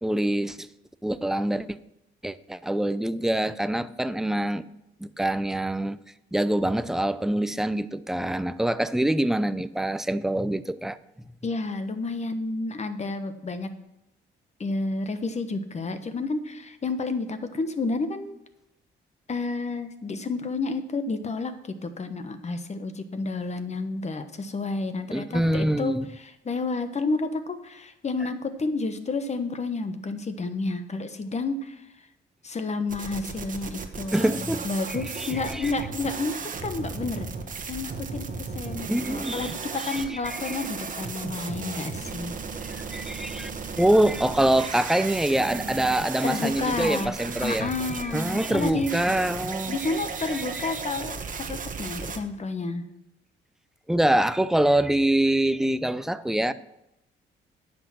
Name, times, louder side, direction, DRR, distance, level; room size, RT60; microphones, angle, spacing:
voice 1, 0.0-0.7 1.0-1.7 2.2-4.6 5.0-6.0 6.3-11.0 25.1-26.1 34.1-34.7 35.2-35.7 38.9-39.5 39.8-40.6 42.5-43.5 43.8-49.8 50.2-50.7 53.9-56.5, right 1 dB, ahead, 0.4 m, -25 dB
voice 2, 11.4-13.7 14.6-18.4 19.3-31.9 32.4-37.3 37.7-42.4 46.2-47.1 47.4-48.9 49.7-52.8, left 3 dB, 35° left, 1.2 m, -30 dB
sound 1, 32.9-52.2, right 5 dB, 40° right, 1.2 m, -35 dB
9.9 x 6.2 x 6.2 m
cardioid pair, 90°, 20 cm